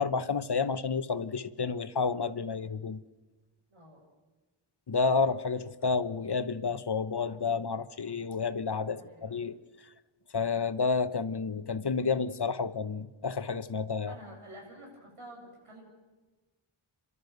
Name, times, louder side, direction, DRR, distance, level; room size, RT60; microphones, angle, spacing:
voice 1, 0.0-3.0 4.9-9.5 10.3-14.1, left 5 dB, 50° left, 12 dB, 1.0 m, -30 dB
voice 2, 3.7-4.1 8.8-9.5 14.1-15.8, right 1 dB, 90° right, -1 dB, 7.3 m, -49 dB
28.5 x 13.0 x 8.0 m, 1.2 s
wide cardioid pair, 45°, 50 cm